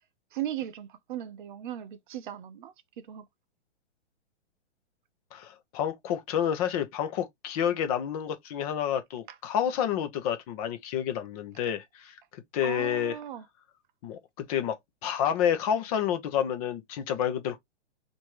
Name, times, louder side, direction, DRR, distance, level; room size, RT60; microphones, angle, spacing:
voice 1, 0.3-3.3 12.6-13.5, right 11 dB, 45° right, 0.5 m, -37 dB
voice 2, 5.3-13.2 14.0-17.6, left 9 dB, 30° left, 0.7 m, -29 dB
3.1 x 2.6 x 4.4 m
hypercardioid pair, 145°, 35 cm